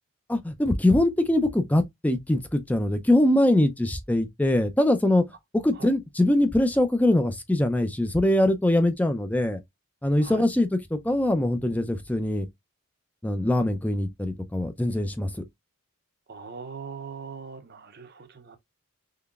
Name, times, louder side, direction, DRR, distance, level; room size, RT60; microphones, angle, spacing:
voice 1, 0.3-5.2 5.5-9.6 10.0-12.5 13.2-15.3, left 1 dB, 5° left, 0.4 m, -23 dB
voice 2, 16.3-18.6, right 5 dB, 50° right, 0.6 m, -40 dB
3.8 x 3.3 x 2.3 m
head